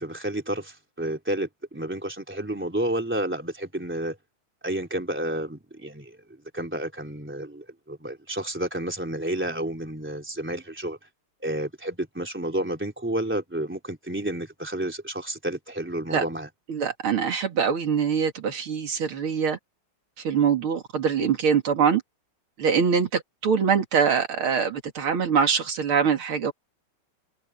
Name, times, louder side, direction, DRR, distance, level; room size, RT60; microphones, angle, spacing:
voice 1, 0.0-4.2 4.6-6.2 6.5-11.0 11.4-16.5, right 1 dB, 5° right, 3.5 m, -30 dB
voice 2, 16.7-19.6 20.2-22.0 22.6-26.5, right 6 dB, 80° right, 3.2 m, -23 dB
omnidirectional pair, 2.3 m